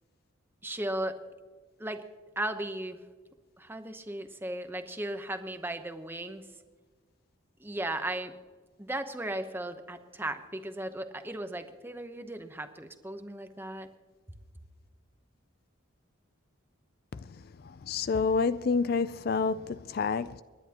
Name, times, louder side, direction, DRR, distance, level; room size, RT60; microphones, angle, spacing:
voice 1, 0.6-1.2 1.8-2.0 2.4-3.0 3.6-6.5 7.6-8.4 8.8-13.9, right 1 dB, 10° right, 0.8 m, -36 dB
voice 2, 17.6-20.4, left 5 dB, 45° left, 0.4 m, -28 dB
29.5 x 11.0 x 2.9 m
head